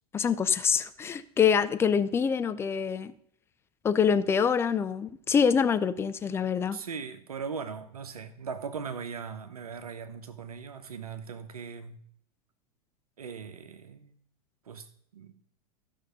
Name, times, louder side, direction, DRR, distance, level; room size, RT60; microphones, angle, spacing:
voice 1, 0.1-3.1 3.8-6.8, left 7 dB, 10° left, 0.4 m, -25 dB
voice 2, 6.7-12.0 13.2-14.1 14.7-14.8 15.1-15.3, right 6 dB, 70° right, 1.1 m, -39 dB
14.5 x 5.5 x 5.2 m
figure-of-eight pair, 95°, 20 cm